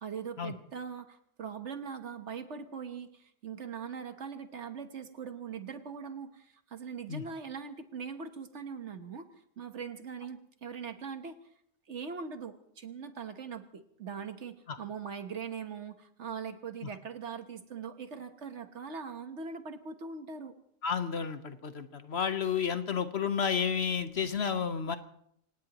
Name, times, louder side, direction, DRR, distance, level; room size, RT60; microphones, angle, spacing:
voice 1, 0.0-9.3 9.6-11.4 11.9-20.5, right 6 dB, 60° right, 8 dB, 1.5 m, -41 dB
voice 2, 20.8-25.0, left 7 dB, 55° left, 9 dB, 1.2 m, -31 dB
26.0 x 18.0 x 3.0 m, 0.71 s
omnidirectional pair, 1.3 m